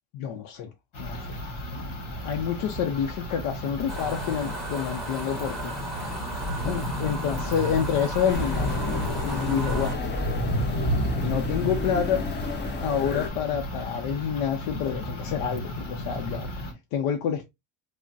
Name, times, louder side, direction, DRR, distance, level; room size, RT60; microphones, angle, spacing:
voice 1, 0.1-0.7 1.0-1.4 1.7-5.8 6.6-10.0 11.2-12.3 12.8-16.5 16.9-17.5, left 8 dB, 75° left, 0.7 m, -28 dB
sound 1, 0.9-16.7, equal, 40° left, 1.7 m, -32 dB
sound 2, 3.9-9.9, right 2 dB, ahead, 1.0 m, -36 dB
sound 3, 8.3-13.3, left 3 dB, 25° left, 0.5 m, -33 dB
5.0 x 2.1 x 2.5 m
cardioid pair, 120°, 49 cm